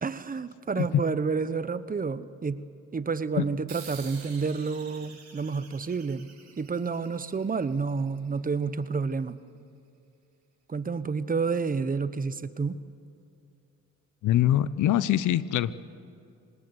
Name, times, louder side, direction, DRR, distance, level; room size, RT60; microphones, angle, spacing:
voice 1, 0.0-9.4 10.7-12.8, right 5 dB, 30° right, 14 dB, 1.0 m, -30 dB
sound 1, 3.7-8.6, right 6 dB, 65° right, 7.3 m, -49 dB
voice 2, 14.2-15.9, left 12 dB, 80° left, 16 dB, 0.8 m, -24 dB
26.0 x 19.0 x 8.2 m, 2.5 s
cardioid pair, 90°, 30 cm